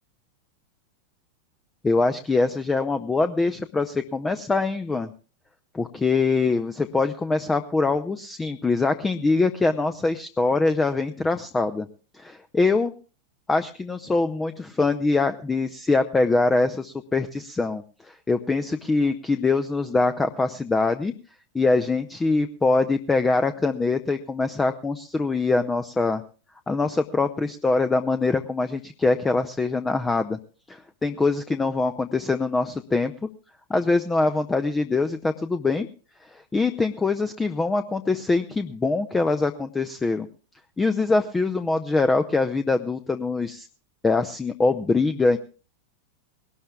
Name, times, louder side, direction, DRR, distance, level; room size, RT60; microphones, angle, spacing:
voice 1, 1.8-5.1 5.7-11.9 12.1-12.9 13.5-21.1 21.5-26.2 26.7-30.4 30.7-33.1 33.7-35.9 36.2-40.3 40.8-43.7 44.0-45.4, left 3 dB, 10° left, 10 dB, 0.6 m, -23 dB
20.5 x 18.0 x 2.4 m, 0.37 s
figure-of-eight pair, 90°, 0 cm